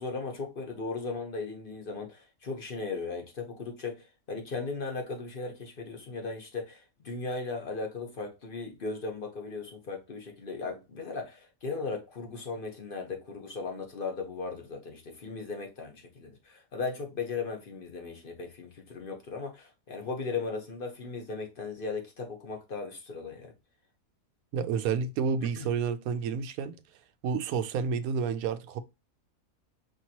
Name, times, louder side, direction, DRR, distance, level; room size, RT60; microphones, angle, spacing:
voice 1, 0.0-23.5 25.6-25.7, left 4 dB, 40° left, 1.2 m, -37 dB
voice 2, 24.5-26.7 27.2-28.8, right 6 dB, 85° right, 1.0 m, -30 dB
5.2 x 3.0 x 2.8 m
omnidirectional pair, 1.5 m